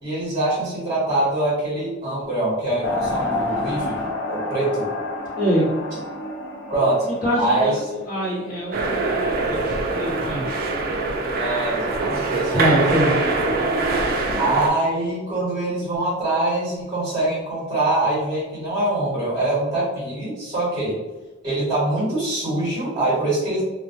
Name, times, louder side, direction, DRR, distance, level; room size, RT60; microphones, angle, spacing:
voice 1, 0.0-4.0 4.3-4.9 6.7-7.1 7.4-7.8 11.3-12.7 14.4-21.0 21.4-23.6, right 2 dB, 25° right, -9 dB, 1.0 m, -24 dB
sound 1, 2.8-8.7, left 2 dB, 65° left, 0.5 m, -29 dB
voice 2, 5.4-5.7 7.0-10.5 12.5-13.1, equal, 45° left, -6 dB, 1.0 m, -24 dB
sound 2, 8.7-14.7, right 3 dB, 50° right, 0.3 m, -23 dB
2.1 x 2.1 x 2.7 m, 1.1 s
head